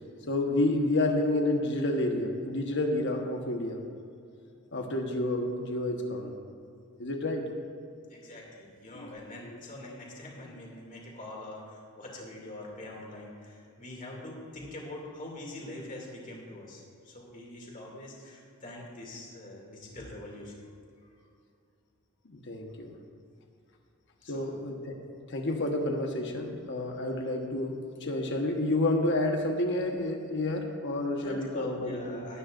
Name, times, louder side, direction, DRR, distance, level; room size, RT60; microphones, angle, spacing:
voice 1, 0.3-3.8 4.7-6.3 7.0-7.5 8.9-9.1 22.3-23.0 24.3-24.9 25.3-32.2, left 1 dB, 55° left, 2 dB, 1.3 m, -29 dB
voice 2, 8.1-20.6 21.0-21.1 24.2-24.5 31.1-32.4, left 1 dB, 40° left, -2 dB, 2.6 m, -44 dB
19.0 x 9.5 x 2.6 m, 2.5 s
head